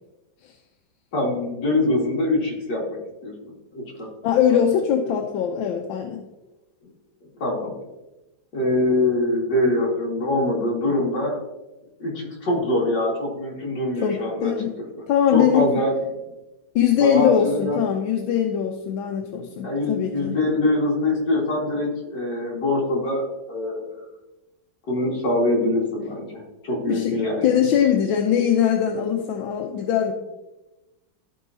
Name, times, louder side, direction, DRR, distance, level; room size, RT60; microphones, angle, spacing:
voice 1, 1.1-3.3 3.7-4.1 4.5-4.6 7.4-7.7 8.5-11.4 12.0-14.8 15.3-16.0 17.0-17.8 19.6-24.1 24.9-27.5, left 1 dB, 55° left, -3 dB, 2.6 m, -24 dB
voice 2, 4.2-6.3 14.0-14.7 15.1-15.6 16.7-20.4 26.9-30.1, left 9 dB, 75° left, 3 dB, 1.4 m, -21 dB
13.5 x 4.6 x 2.7 m, 1.0 s
omnidirectional pair, 2.2 m